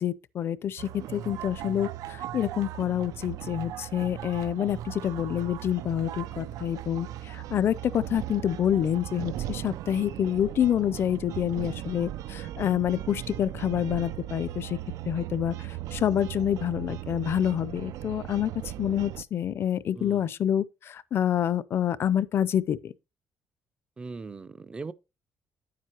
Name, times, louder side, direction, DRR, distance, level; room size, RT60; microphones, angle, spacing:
voice 1, 0.0-14.8 15.1-18.5 18.8-22.9, left 10 dB, 45° left, 0.5 m, -27 dB
sound 1, 0.8-19.2, right 13 dB, 90° right, 0.4 m, -38 dB
voice 2, 19.9-20.3 24.0-24.9, right 4 dB, 15° right, 0.4 m, -39 dB
9.8 x 7.6 x 2.9 m
cardioid pair, 170°, 6 cm